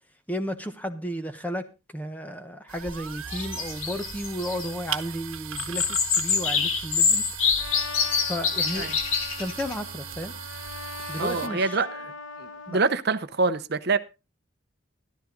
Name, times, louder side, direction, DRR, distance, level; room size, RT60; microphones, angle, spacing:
voice 1, 0.3-1.7 1.9-7.2 8.2-8.9 9.4-10.3 11.1-11.8 12.7-12.8, equal, 10° left, 1.1 m, -33 dB
sound 1, 2.7-11.5, right 8 dB, 80° right, 1.1 m, -38 dB
sound 2, 3.3-4.7 5.6-9.7, left 6 dB, 85° left, 1.9 m, -25 dB
Trumpet, 7.6-13.0, left 3 dB, 65° left, 1.2 m, -40 dB
voice 2, 11.2-12.1 12.4-14.0, right 4 dB, 50° right, 0.8 m, -26 dB
13.5 x 12.5 x 3.8 m
head